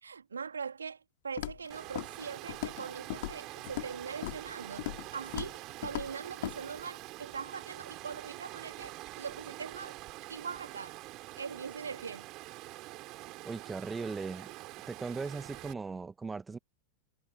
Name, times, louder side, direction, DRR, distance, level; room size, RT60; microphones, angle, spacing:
voice 1, 0.0-4.9 5.1-10.0 10.3-11.0 11.4-12.3, right 6 dB, 75° right, 2.5 m, -42 dB
Walk footsteps, 1.4-1.7 2.0-2.2 2.5-2.9 3.1-3.9 4.2-4.5 4.8-5.1 5.3-5.6 5.8-6.1 6.4-6.6, left 18 dB, 50° left, 3.8 m, -37 dB
Water, 1.7-15.7, right 19 dB, 40° right, 3.9 m, -46 dB
voice 2, 13.4-14.5 14.9-16.6, right 4 dB, 15° right, 2.0 m, -38 dB
figure-of-eight pair, 90°, 0 cm